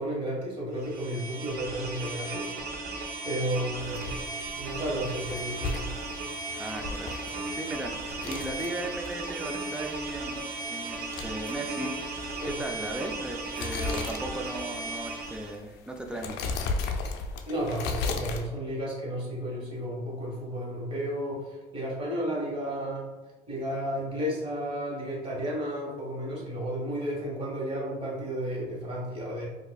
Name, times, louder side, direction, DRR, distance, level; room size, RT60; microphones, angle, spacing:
voice 1, 0.0-2.5 3.2-4.0 4.4-5.9 12.4-12.6 17.5-23.0 23.5-29.5, equal, 35° right, -4 dB, 1.4 m, -32 dB
sound 1, 0.8-15.6, right 3 dB, 65° right, 0.7 m, -36 dB
sound 2, 3.8-18.5, left 4 dB, 85° left, 0.4 m, -37 dB
voice 2, 6.5-7.2 7.5-10.4 10.7-11.9 12.4-16.6, right 1 dB, 5° right, 3 dB, 0.4 m, -37 dB
4.5 x 2.5 x 2.3 m, 1.2 s
cardioid pair, 110°, 17 cm